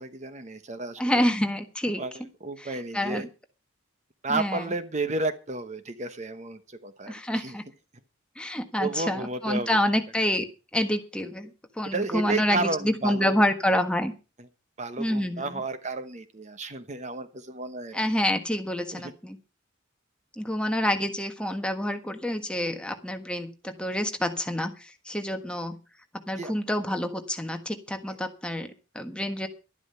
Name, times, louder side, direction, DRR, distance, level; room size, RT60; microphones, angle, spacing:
voice 1, 0.0-1.3 2.0-2.1 2.4-3.3 4.2-7.6 8.8-9.8 11.8-13.4 14.8-18.0 18.9-19.1 26.4-26.5, right 3 dB, 35° right, 10 dB, 1.0 m, -32 dB
voice 2, 1.0-2.3 2.6-3.3 4.3-4.6 7.1-7.6 8.4-10.5 10.7-11.5 11.8-14.1 15.0-15.6 17.9-19.4 20.4-24.7 25.1-25.8 26.3-29.5, left 1 dB, 5° left, 6 dB, 1.4 m, -27 dB
12.0 x 11.5 x 5.5 m, 0.32 s
head